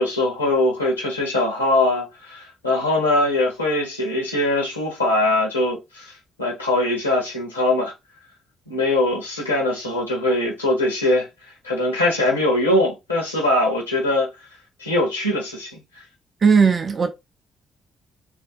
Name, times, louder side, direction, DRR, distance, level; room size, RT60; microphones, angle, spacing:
voice 1, 0.0-6.1 6.4-7.9 8.7-11.3 11.6-14.3 14.8-15.8, left 2 dB, 85° left, 0.6 m, -21 dB
voice 2, 16.4-17.1, right 5 dB, 40° right, 0.4 m, -16 dB
2.4 x 2.4 x 2.2 m
figure-of-eight pair, 45°, 0 cm